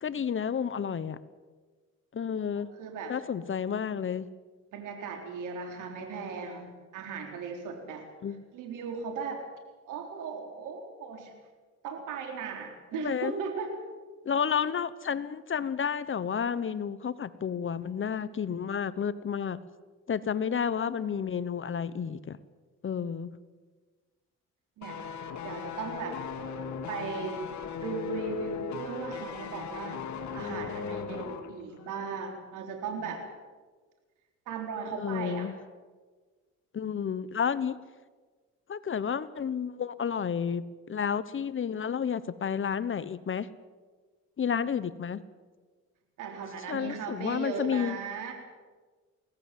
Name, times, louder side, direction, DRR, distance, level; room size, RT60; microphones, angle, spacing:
voice 1, 0.0-1.2 2.1-2.7 3.1-4.3 8.2-8.4 12.9-13.3 14.2-19.6 20.1-22.4 22.8-23.3 35.0-35.6 36.7-37.8 38.7-40.6 40.9-43.5 44.4-45.2 46.7-48.0, left 7 dB, 40° left, 16 dB, 1.1 m, -31 dB
voice 2, 2.6-3.1 4.7-8.0 8.5-9.4 9.9-11.3 11.8-13.8 24.8-25.0 25.4-26.2 26.9-30.0 30.3-33.2 34.5-35.5 46.2-48.3, right 5 dB, 85° right, 3 dB, 3.9 m, -37 dB
sound 1, 24.8-31.5 31.8-31.9, left 7 dB, 70° left, 2.4 m, -37 dB
23.5 x 18.0 x 7.6 m, 1.4 s
cardioid pair, 90°, 30 cm